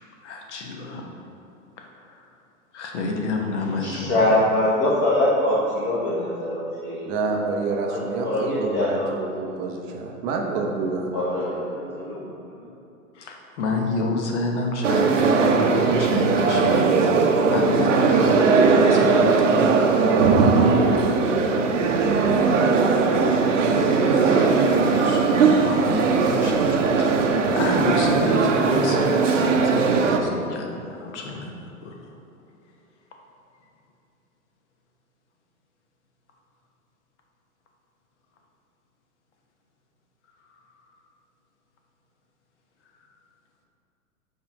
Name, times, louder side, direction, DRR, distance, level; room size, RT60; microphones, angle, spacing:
voice 1, 0.2-1.1 2.7-4.2 13.2-17.1 17.5-19.8 20.4-21.3 22.6-23.5 23.8-27.2 27.5-31.5 31.8-32.0, left 2 dB, 50° left, 1 dB, 1.2 m, -30 dB
voice 2, 3.7-7.3 7.9-9.1 11.1-11.5, left 1 dB, 25° left, -8 dB, 1.2 m, -23 dB
voice 3, 7.1-11.1, right 3 dB, 20° right, 2 dB, 0.5 m, -27 dB
voice 4, 11.1-12.8, equal, 5° left, -7 dB, 1.4 m, -41 dB
sound 1, 14.8-30.2, right 4 dB, 55° right, 0.7 m, -19 dB
5.5 x 4.6 x 5.2 m, 2.7 s
figure-of-eight pair, 105°, 44 cm